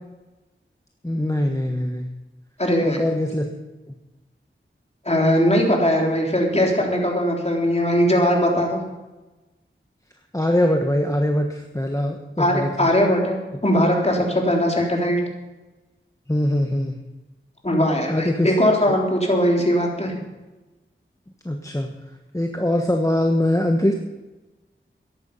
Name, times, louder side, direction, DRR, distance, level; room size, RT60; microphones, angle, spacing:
voice 1, 1.0-2.1 2.8-3.5 10.3-12.9 16.3-17.0 18.1-18.5 18.9-19.0 21.4-21.9 22.3-23.9, left 1 dB, 15° left, 3 dB, 1.3 m, -22 dB
voice 2, 2.6-3.0 5.1-8.8 12.4-15.2 17.6-20.1, equal, 30° left, -1 dB, 3.7 m, -20 dB
14.0 x 11.0 x 5.6 m, 1.1 s
wide cardioid pair, 40°, 21 cm